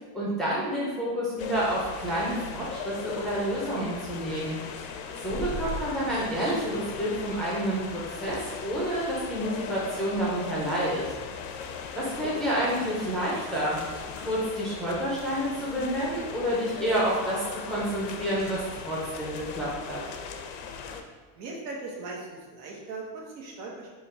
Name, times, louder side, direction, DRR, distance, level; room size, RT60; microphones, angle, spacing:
voice 1, 0.1-4.6 5.2-11.0 11.9-13.8 14.2-20.0, equal, ahead, -7 dB, 0.4 m, -29 dB
sound 1, 1.4-21.0, left 6 dB, 80° left, 0.6 m, -39 dB
sound 2, 5.3-5.9, right 2 dB, 35° right, 1.1 m, -34 dB
voice 2, 21.3-23.9, right 3 dB, 80° right, -2 dB, 1.3 m, -39 dB
3.7 x 2.4 x 4.2 m, 1.5 s
cardioid pair, 150°, 46 cm